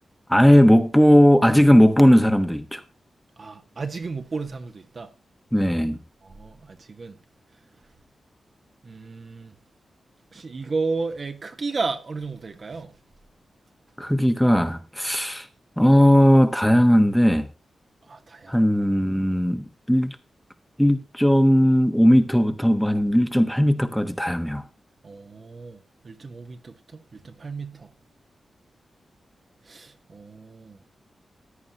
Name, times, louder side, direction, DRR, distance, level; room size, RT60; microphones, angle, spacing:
voice 1, 0.3-2.8 5.5-6.0 14.0-15.5 15.8-17.5 18.5-20.1 20.8-24.6, equal, ahead, 1.1 m, -17 dB
voice 2, 3.4-5.1 6.2-7.2 8.8-9.5 10.3-12.9 18.1-18.6 25.0-25.8 26.0-27.9 29.6-30.8, right 4 dB, 50° right, 1.3 m, -33 dB
14.5 x 9.7 x 2.9 m
cardioid pair, 75°, 0 cm